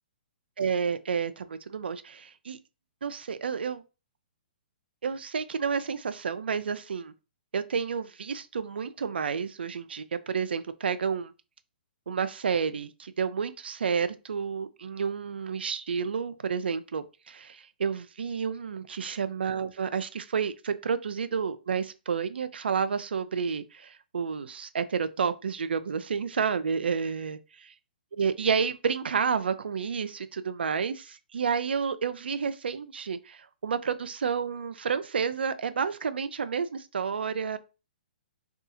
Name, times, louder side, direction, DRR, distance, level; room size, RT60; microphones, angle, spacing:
voice 1, 0.6-2.6 3.0-3.8 5.0-7.1 7.5-11.3 12.1-27.4 28.1-37.6, right 6 dB, 85° right, 0.3 m, -30 dB
2.7 x 2.3 x 2.6 m
hypercardioid pair, 140°, 5 cm